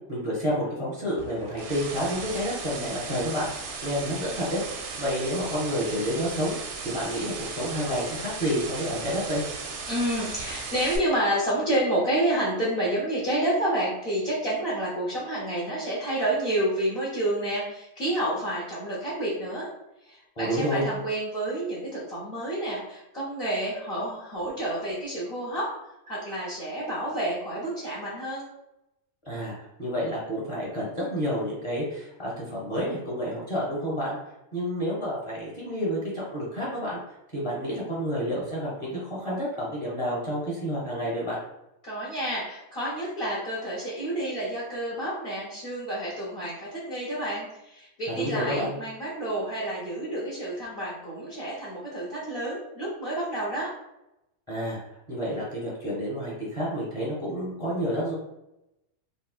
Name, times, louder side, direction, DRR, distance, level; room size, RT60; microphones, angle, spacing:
voice 1, 0.1-3.5 3.8-4.6 5.0-9.4 20.4-20.8 29.3-34.2 34.5-37.0 37.3-41.4 48.1-48.8 54.5-54.8 55.1-58.2, equal, 25° left, -6 dB, 0.9 m, -29 dB
sound 1, 1.2-11.0, right 4 dB, 65° right, 0.7 m, -36 dB
voice 2, 9.9-19.7 20.0-25.7 26.1-28.4 41.8-53.7, right 1 dB, 50° left, -7 dB, 0.8 m, -29 dB
3.7 x 2.2 x 2.3 m, 0.87 s
omnidirectional pair, 1.5 m